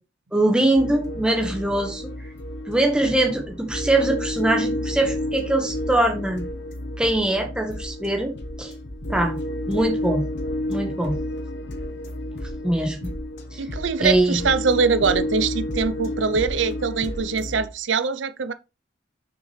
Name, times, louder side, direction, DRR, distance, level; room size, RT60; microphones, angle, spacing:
voice 1, 0.3-2.1 2.7-6.4 7.0-8.7 9.1-9.4 9.7-10.2 10.7-11.2 12.6-13.1 13.5-13.6 14.0-14.4, right 1 dB, 5° right, 1.4 m, -22 dB
sound 1, 0.8-17.7, left 1 dB, 65° left, 1.3 m, -31 dB
voice 2, 13.6-18.5, right 5 dB, 70° right, 0.6 m, -23 dB
6.4 x 6.0 x 3.3 m
head